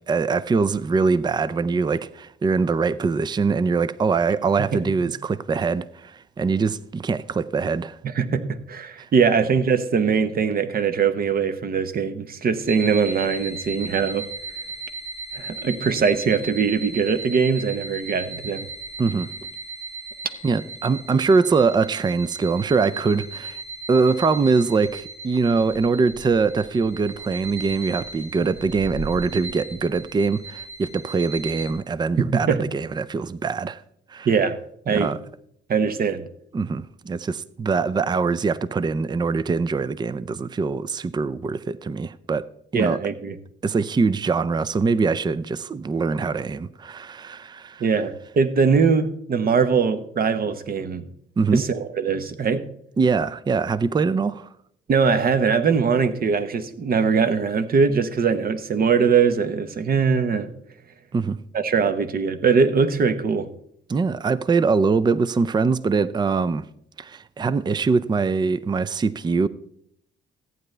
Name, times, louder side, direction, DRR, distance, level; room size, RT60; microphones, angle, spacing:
voice 1, 0.1-8.0 19.0-19.3 20.4-23.6 23.9-33.8 34.1-34.3 34.9-35.2 36.5-42.5 42.7-43.0 43.6-47.8 51.4-51.6 53.0-54.5 61.1-61.4 63.9-66.7 67.0-69.5, right 4 dB, 20° right, 0.4 m, -23 dB
voice 2, 8.0-14.3 15.3-18.7 32.2-32.6 34.2-34.5 34.9-35.2 35.7-36.2 42.7-43.4 47.8-51.1 51.5-52.7 54.9-60.5 61.5-63.5, right 5 dB, 50° right, 1.0 m, -21 dB
sound 1, 12.6-31.7, right 3 dB, 90° right, 4.9 m, -37 dB
14.5 x 9.2 x 3.3 m
cardioid pair, 90°, 20 cm